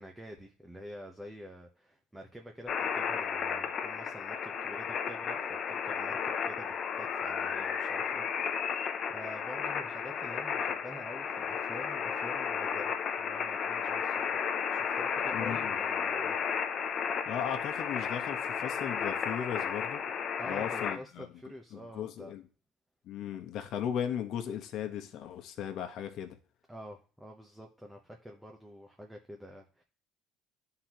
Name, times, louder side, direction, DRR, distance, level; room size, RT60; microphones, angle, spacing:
voice 1, 0.0-14.4 14.7-16.4 20.4-22.3 26.7-29.8, equal, 5° right, 0.9 m, -47 dB
sound 1, 2.7-21.0, left 7 dB, 45° left, 0.7 m, -33 dB
voice 2, 15.3-15.7 17.3-20.0 20.5-21.3 21.7-22.4 23.1-26.4, left 9 dB, 60° left, 1.1 m, -36 dB
11.0 x 3.9 x 3.0 m
cardioid pair, 115°, 0 cm